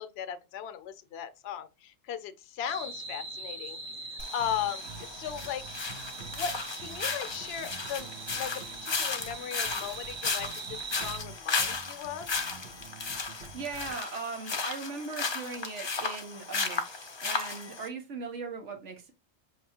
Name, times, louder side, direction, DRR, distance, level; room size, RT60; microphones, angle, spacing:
voice 1, 0.0-3.8 4.3-5.6 6.2-12.3, left 9 dB, 70° left, 0.8 m, -37 dB
sound 1, 2.6-11.2, right 4 dB, 40° right, 0.5 m, -42 dB
sound 2, 4.2-17.9, left 4 dB, 35° left, 0.5 m, -35 dB
sound 3, 4.4-14.0, right 5 dB, 65° right, 0.9 m, -49 dB
voice 2, 13.5-19.1, right 4 dB, 85° right, 1.3 m, -39 dB
5.8 x 2.9 x 2.8 m
omnidirectional pair, 1.2 m